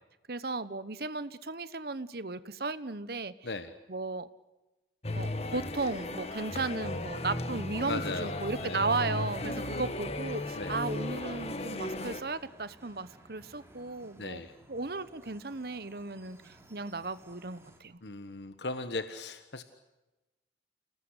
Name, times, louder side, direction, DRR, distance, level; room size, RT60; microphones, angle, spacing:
voice 1, 0.3-3.3 3.9-4.3 5.1-14.4 14.7-18.0, right 3 dB, 60° right, 15 dB, 1.1 m, -35 dB
sound 1, 5.0-12.2, left 2 dB, 35° left, 1.8 m, -36 dB
voice 2, 7.9-8.9 10.6-10.8 14.2-14.5 18.0-19.6, left 3 dB, 80° left, 10 dB, 1.4 m, -37 dB
sound 2, 9.9-17.8, right 1 dB, 15° right, 3.4 m, -58 dB
28.5 x 19.5 x 8.1 m, 1.1 s
head